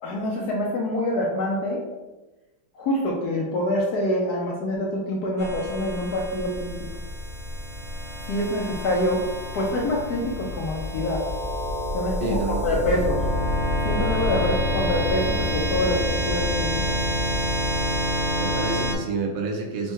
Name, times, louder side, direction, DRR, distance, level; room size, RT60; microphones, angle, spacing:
voice 1, 0.0-1.8 2.7-6.8 8.3-9.2 9.5-11.2 11.9-13.2 13.8-16.7, left 1 dB, 70° left, -1 dB, 0.9 m, -26 dB
sound 1, 5.4-18.9, equal, 60° right, 0.7 m, -27 dB
voice 2, 12.2-13.1 18.4-19.9, right 3 dB, 80° right, 1 dB, 1.5 m, -29 dB
4.3 x 2.2 x 4.5 m, 1.1 s
omnidirectional pair, 2.2 m